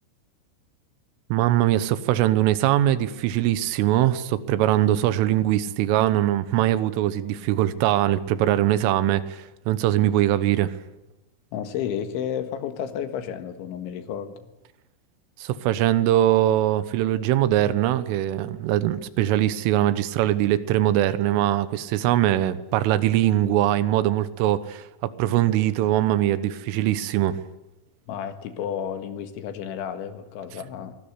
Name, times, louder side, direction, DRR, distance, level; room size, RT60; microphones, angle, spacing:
voice 1, 1.3-10.7 15.4-27.4, right 13 dB, 85° right, 3.7 m, -22 dB
voice 2, 11.5-14.5 28.1-30.9, left 9 dB, 75° left, 3.9 m, -32 dB
24.5 x 19.5 x 8.2 m
omnidirectional pair, 5.6 m